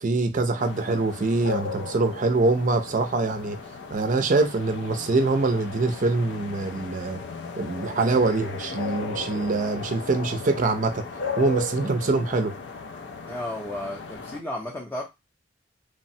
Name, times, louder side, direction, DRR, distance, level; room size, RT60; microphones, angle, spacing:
voice 1, 0.0-3.6 3.9-7.2 7.6-11.0 11.4-12.5, right 3 dB, 45° right, 0.4 m, -24 dB
sound 1, 0.6-14.4, left 4 dB, 65° left, 0.4 m, -36 dB
voice 2, 13.3-15.0, left 1 dB, 10° left, 0.5 m, -33 dB
3.2 x 2.0 x 2.7 m
head